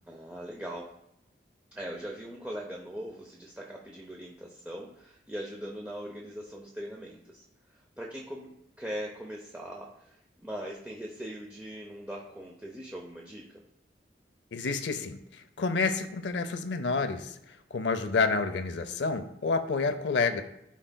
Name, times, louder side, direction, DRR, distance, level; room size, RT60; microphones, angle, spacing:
voice 1, 0.1-0.9 1.7-8.5 8.8-13.6, equal, 10° right, -2 dB, 0.6 m, -41 dB
voice 2, 14.5-17.4 17.7-20.4, left 4 dB, 80° left, 11 dB, 0.6 m, -29 dB
11.5 x 4.5 x 2.2 m, 0.81 s
head